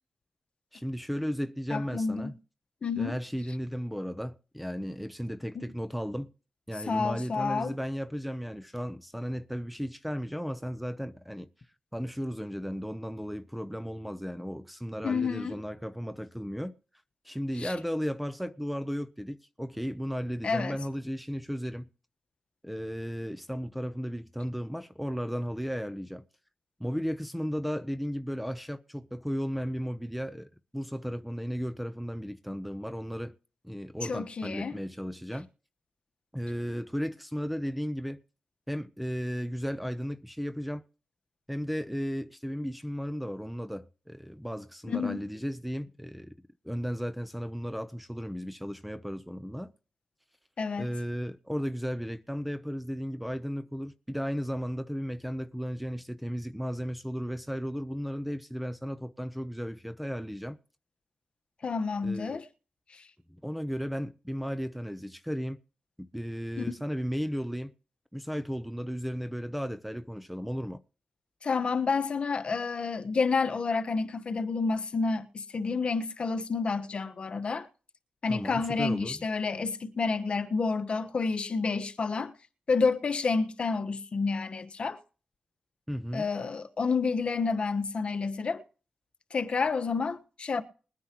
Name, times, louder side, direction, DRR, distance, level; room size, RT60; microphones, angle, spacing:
voice 1, 0.7-2.4 3.0-6.3 6.7-11.5 11.9-16.7 17.2-21.9 22.6-26.2 26.8-33.4 33.6-35.5 36.3-38.2 38.7-40.8 41.5-46.3 46.6-49.7 50.8-60.6 62.0-62.4 63.3-65.6 66.0-67.7 68.1-70.8 78.3-79.2 85.9-86.3, equal, ahead, 0.7 m, -35 dB
voice 2, 1.7-2.3 2.8-3.2 5.5-5.6 6.9-7.8 15.0-15.5 17.6-17.7 20.4-20.8 34.1-34.8 44.9-45.2 50.6-50.9 61.6-62.5 62.9-63.0 66.6-66.7 71.4-77.7 78.2-82.3 82.7-85.0 86.1-88.6 89.3-90.6, left 4 dB, 50° left, 1.3 m, -29 dB
21.5 x 9.5 x 3.1 m
cardioid pair, 80°, 2 cm